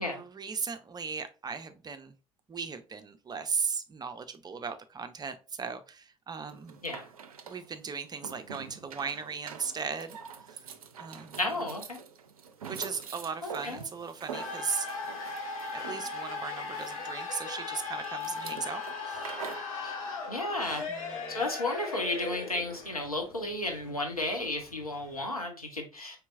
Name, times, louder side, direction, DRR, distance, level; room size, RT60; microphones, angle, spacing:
voice 1, 0.0-2.1 2.5-6.8 7.5-10.2 10.5-10.6 11.0-11.4 12.7-14.9 15.7-19.3 20.9-21.4, right 5 dB, 20° right, 9 dB, 0.5 m, -37 dB
sound 1, 6.5-19.7, right 6 dB, 80° right, 0.4 m, -45 dB
voice 2, 11.4-12.0 13.4-13.8 19.8-19.9 20.3-20.8 21.3-26.2, left 2 dB, 90° left, 3 dB, 0.8 m, -33 dB
sound 2, 14.3-25.2, left 4 dB, 65° left, 1.0 m, -38 dB
4.5 x 3.3 x 2.4 m, 0.32 s
figure-of-eight pair, 60°, 18 cm